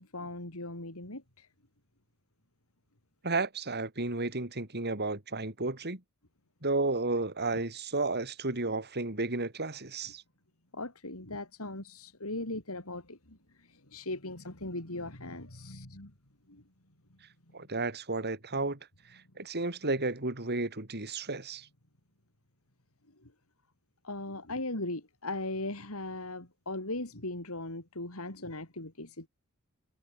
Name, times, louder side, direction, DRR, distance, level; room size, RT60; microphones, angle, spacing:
voice 1, 0.0-1.5 10.7-16.1 16.5-16.6 23.2-23.3 24.0-29.3, left 2 dB, 70° left, 4.9 m, -39 dB
voice 2, 3.2-6.0 6.6-10.2 17.5-18.8 19.4-21.7, right 3 dB, 50° right, 4.0 m, -32 dB
head